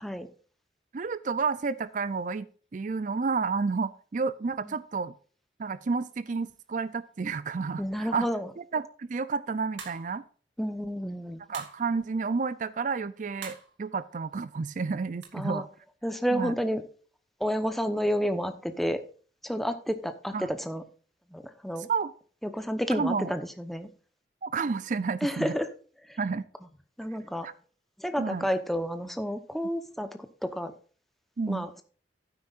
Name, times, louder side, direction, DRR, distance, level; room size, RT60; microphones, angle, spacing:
voice 1, 0.9-2.5 2.7-5.1 5.6-8.3 8.6-10.2 11.5-15.7 16.3-16.5 20.3-20.5 21.9-22.1 22.9-23.3 24.4-25.5 26.2-26.5 27.4-27.5 28.2-28.5 31.4-31.7, right 4 dB, 45° right, 16 dB, 0.4 m, -30 dB
voice 2, 7.8-8.5 10.6-11.4 15.3-15.7 16.0-16.8 17.4-19.0 19.4-20.8 21.3-21.9 22.4-23.9 25.2-25.7 26.1-26.2 27.0-27.5 28.0-30.7 31.5-31.8, equal, ahead, 8 dB, 0.9 m, -30 dB
sound 1, 9.8-10.2 11.5-11.9 13.4-13.8 15.2-15.3, right 5 dB, 80° right, 2.4 m, -43 dB
12.0 x 9.6 x 2.5 m, 0.41 s
head